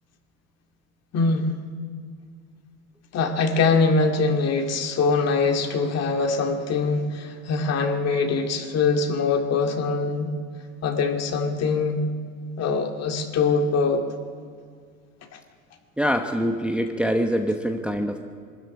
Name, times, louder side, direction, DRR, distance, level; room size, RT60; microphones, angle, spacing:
voice 1, 1.1-1.5 3.1-10.3 10.8-12.1 12.6-14.0 15.3-15.4, left 4 dB, 40° left, 5 dB, 2.2 m, -23 dB
voice 2, 16.0-18.2, equal, 5° right, 4 dB, 1.0 m, -24 dB
21.5 x 13.0 x 9.8 m, 2.1 s
supercardioid pair, 115°, 39 cm